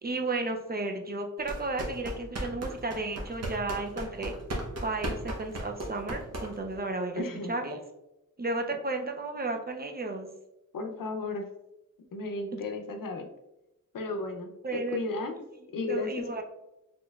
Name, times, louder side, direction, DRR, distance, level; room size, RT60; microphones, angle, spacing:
voice 1, 0.0-4.4 4.8-7.8 8.4-10.3 14.6-15.0 15.9-16.4, right 2 dB, 30° right, 4 dB, 0.4 m, -33 dB
sound 1, 1.4-6.8, right 1 dB, 50° right, 0.8 m, -36 dB
voice 2, 7.1-7.5 10.7-11.5 12.1-13.3 13.9-15.4 15.7-16.4, left 3 dB, 85° left, 5 dB, 0.6 m, -34 dB
4.1 x 3.1 x 2.3 m, 0.95 s
wide cardioid pair, 110°, 32 cm